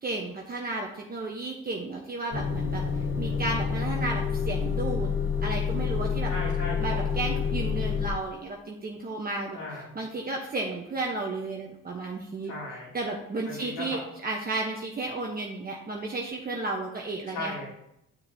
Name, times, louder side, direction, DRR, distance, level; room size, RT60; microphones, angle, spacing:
voice 1, 0.0-2.8 3.2-5.1 5.4-6.3 6.8-9.6 9.9-12.5 12.9-17.5, right 2 dB, 30° right, -1 dB, 1.2 m, -33 dB
Motor vehicle (road) / Engine starting / Idling, 2.3-8.1, left 6 dB, 40° left, 1.1 m, -28 dB
voice 2, 6.2-7.2 9.5-9.9 12.4-12.9 13.4-14.0 17.3-17.7, left 2 dB, 75° left, -3 dB, 3.1 m, -37 dB
10.5 x 6.5 x 2.9 m, 0.80 s
cardioid pair, 90°, 30 cm